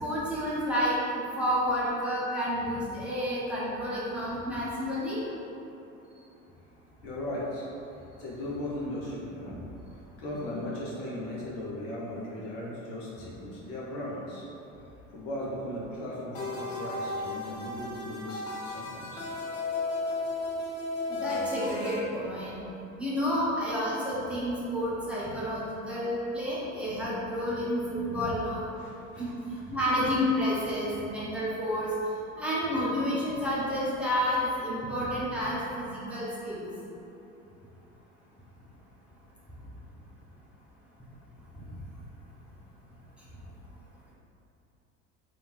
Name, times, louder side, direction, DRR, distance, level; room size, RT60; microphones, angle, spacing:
voice 1, 0.0-5.2 21.1-22.6 23.0-28.7 29.2-29.3 29.7-31.9 32.4-36.7, equal, 5° right, -9 dB, 1.2 m, -30 dB
voice 2, 7.0-7.7 8.2-9.6 10.2-14.5 15.1-19.2 28.8-29.6, left 1 dB, 60° left, -6 dB, 1.2 m, -37 dB
sound 1, 16.3-22.0, left 2 dB, 75° left, 0.8 m, -34 dB
3.4 x 3.0 x 4.4 m, 2.9 s
figure-of-eight pair, 65°, 41 cm